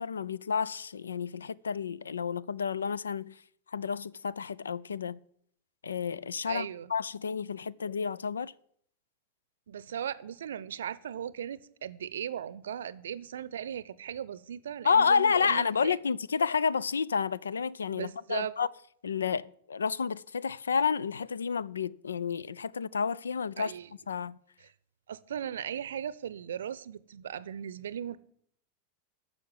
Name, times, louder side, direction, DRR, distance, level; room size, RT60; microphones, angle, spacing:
voice 1, 0.0-3.4 3.7-5.2 5.8-8.5 14.8-18.7 19.0-23.7 24.1-24.4, left 6 dB, 70° left, 0.4 m, -30 dB
voice 2, 6.5-6.9 9.7-16.0 17.9-18.5 23.6-23.9 25.1-28.2, right 9 dB, 65° right, 0.6 m, -37 dB
11.5 x 7.1 x 9.3 m
figure-of-eight pair, 90°, 0 cm